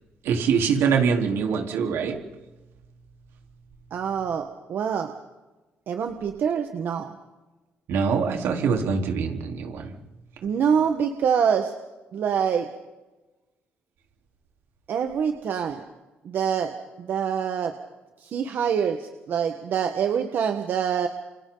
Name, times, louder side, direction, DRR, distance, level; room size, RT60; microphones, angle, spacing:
voice 1, 0.2-2.2 7.9-9.9, right 6 dB, 80° right, 2 dB, 4.0 m, -24 dB
voice 2, 3.9-5.1 5.9-7.2 10.4-11.7 12.1-12.7 14.9-15.8 16.2-17.7 18.2-21.1, right 7 dB, 55° right, 5 dB, 1.5 m, -25 dB
29.0 x 28.5 x 4.0 m, 1.1 s
cardioid pair, 135°, 4 cm